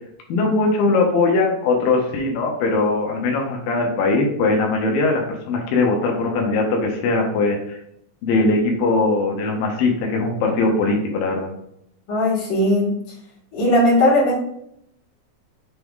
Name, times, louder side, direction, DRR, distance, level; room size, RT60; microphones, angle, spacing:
voice 1, 0.3-7.8 8.2-11.5, left 3 dB, 85° left, 1 dB, 2.7 m, -20 dB
voice 2, 12.1-12.9 13.5-14.4, left 1 dB, 45° left, -6 dB, 2.9 m, -17 dB
8.5 x 3.4 x 3.6 m, 0.73 s
omnidirectional pair, 3.9 m